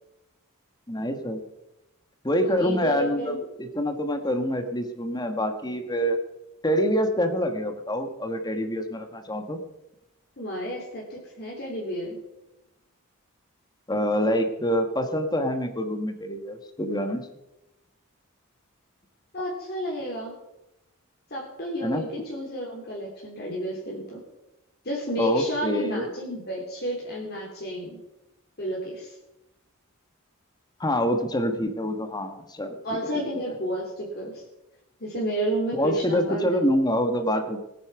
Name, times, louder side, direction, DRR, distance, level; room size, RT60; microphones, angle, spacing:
voice 1, 0.9-1.4 2.2-6.2 6.6-9.6 13.9-17.3 21.8-22.0 25.2-26.0 30.8-32.8 35.7-37.6, equal, 20° left, 7 dB, 1.4 m, -26 dB
voice 2, 2.4-3.4 10.4-12.2 19.3-20.3 21.3-24.2 24.8-28.0 28.6-29.2 32.8-34.4 35.0-36.6, equal, 50° left, -3 dB, 3.4 m, -31 dB
20.0 x 10.0 x 5.8 m, 0.92 s
head